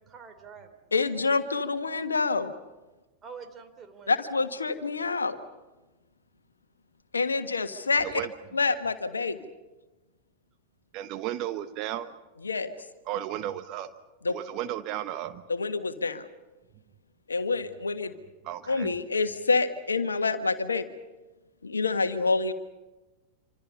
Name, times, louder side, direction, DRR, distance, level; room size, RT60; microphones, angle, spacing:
voice 1, 0.0-0.9 3.2-4.8, right 5 dB, 25° right, 7 dB, 3.1 m, -47 dB
voice 2, 0.9-2.5 4.1-5.4 7.1-8.2 8.5-9.4 12.4-12.7 14.2-14.3 15.5-16.3 17.3-18.1 18.7-20.9 21.6-22.5, left 4 dB, 75° left, 9 dB, 1.5 m, -27 dB
voice 3, 8.0-8.3 10.9-12.1 13.1-13.9 14.3-15.4 18.4-18.9, right 12 dB, 40° right, 10 dB, 1.0 m, -34 dB
27.0 x 25.5 x 5.5 m, 1.1 s
figure-of-eight pair, 90°, 0 cm